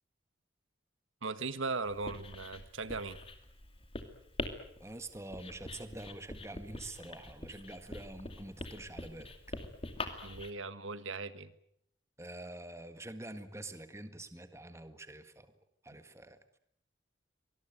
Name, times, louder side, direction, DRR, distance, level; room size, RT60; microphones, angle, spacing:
voice 1, 1.2-3.2 10.2-11.5, right 3 dB, 85° right, 13 dB, 1.6 m, -38 dB
Writing, 1.9-10.5, left 2 dB, 30° left, 2.6 m, -44 dB
voice 2, 4.8-9.3 12.2-15.5 15.8-16.4, right 1 dB, 15° right, 10 dB, 1.7 m, -46 dB
24.5 x 20.0 x 9.2 m, 0.70 s
head